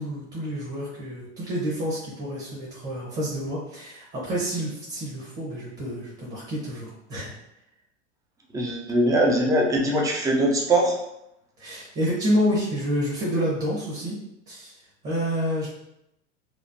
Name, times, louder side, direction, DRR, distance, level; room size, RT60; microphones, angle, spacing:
voice 1, 0.0-7.3 11.6-14.2 14.5-15.7, equal, 30° right, -6 dB, 1.0 m, -28 dB
voice 2, 8.5-11.0, right 1 dB, 10° right, -1 dB, 0.4 m, -21 dB
3.1 x 2.0 x 2.7 m, 0.84 s
hypercardioid pair, 100°, 36 cm